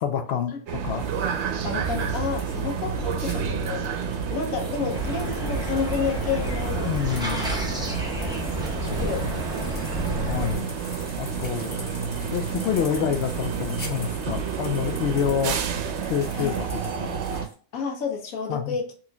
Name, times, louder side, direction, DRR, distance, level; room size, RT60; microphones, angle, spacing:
voice 1, 0.0-1.1 6.8-7.6 10.3-10.7 11.2-11.7 12.3-15.6 16.0-16.7 17.0-17.2 18.5-18.8, left 8 dB, 65° left, 8 dB, 0.7 m, -27 dB
sound 1, 0.7-17.5, right 6 dB, 65° right, 0.8 m, -30 dB
sound 2, 1.0-17.5, left 1 dB, 35° left, 1.4 m, -43 dB
voice 2, 1.6-7.1 7.7-8.4 8.8-9.9 16.4-16.6 17.7-18.9, left 6 dB, 85° left, 3 dB, 1.2 m, -31 dB
sound 3, 4.9-10.5, right 1 dB, 5° right, 0.5 m, -31 dB
3.9 x 3.0 x 2.2 m, 0.42 s
omnidirectional pair, 1.4 m